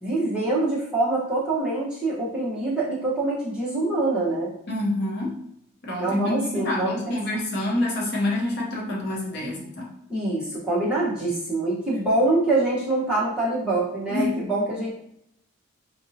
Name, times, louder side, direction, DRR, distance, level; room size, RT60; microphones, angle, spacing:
voice 1, 0.0-4.5 6.0-7.2 10.1-14.9, right 2 dB, 5° right, -8 dB, 0.9 m, -25 dB
voice 2, 4.7-5.3 5.8-9.9 14.1-14.4, left 1 dB, 50° left, -3 dB, 0.7 m, -27 dB
4.2 x 2.7 x 2.7 m, 0.76 s
head